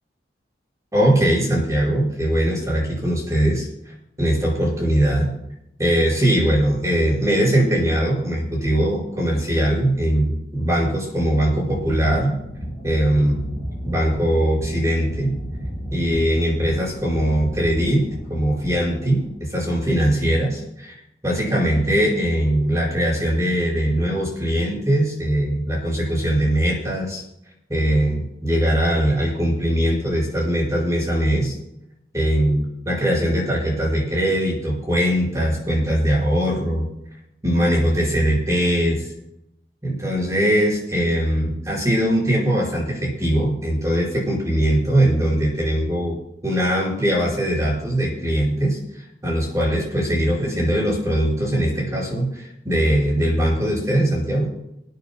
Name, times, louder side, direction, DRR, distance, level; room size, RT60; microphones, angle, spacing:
voice 1, 0.9-5.3 5.8-12.4 12.8-13.4 13.8-15.3 15.9-18.0 18.3-20.9 21.2-27.2 27.7-31.5 32.1-36.9 37.4-39.1 39.8-46.2 46.4-54.5, right 1 dB, 20° right, -4 dB, 5.1 m, -21 dB
sound 1, 11.7-19.4, equal, 40° right, 4.6 m, -33 dB
27.0 x 9.4 x 2.2 m, 0.81 s
head